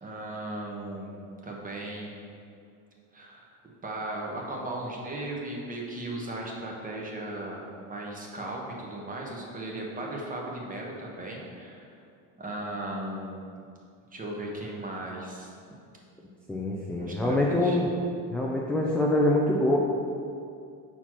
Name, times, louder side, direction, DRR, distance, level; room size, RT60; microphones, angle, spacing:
voice 1, 0.0-2.3 3.1-3.5 3.8-11.9 12.4-13.6 14.1-15.5 16.9-17.8, right 1 dB, 20° right, -2 dB, 1.1 m, -37 dB
voice 2, 16.5-17.9 18.3-19.8, left 1 dB, 5° left, -3 dB, 0.4 m, -25 dB
5.8 x 4.3 x 4.6 m, 2.4 s
cardioid pair, 120°, 38 cm